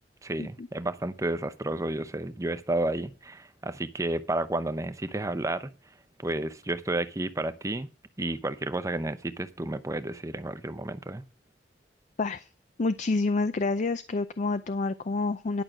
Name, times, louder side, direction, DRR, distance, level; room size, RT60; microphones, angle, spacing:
voice 1, 0.2-5.7 6.2-7.9 8.2-11.2, right 2 dB, 20° right, 0.7 m, -31 dB
voice 2, 12.2-12.5 12.8-15.6, left 3 dB, 45° left, 0.5 m, -28 dB
11.0 x 6.4 x 5.9 m
head